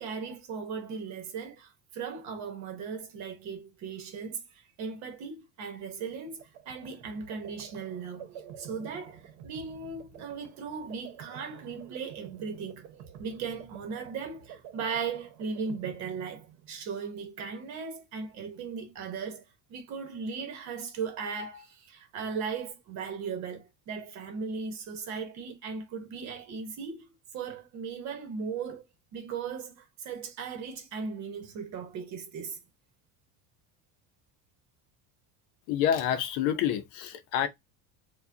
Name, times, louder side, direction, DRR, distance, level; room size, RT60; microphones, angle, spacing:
voice 1, 0.0-8.3 8.6-12.9 13.2-19.4 19.7-28.8 29.1-32.6, right 5 dB, 45° right, 1.2 m, -37 dB
sound 1, 6.1-17.0, right 8 dB, 70° right, 1.0 m, -49 dB
voice 2, 35.7-37.5, left 9 dB, 55° left, 0.7 m, -28 dB
4.7 x 2.4 x 2.7 m
cardioid pair, 180°, 38 cm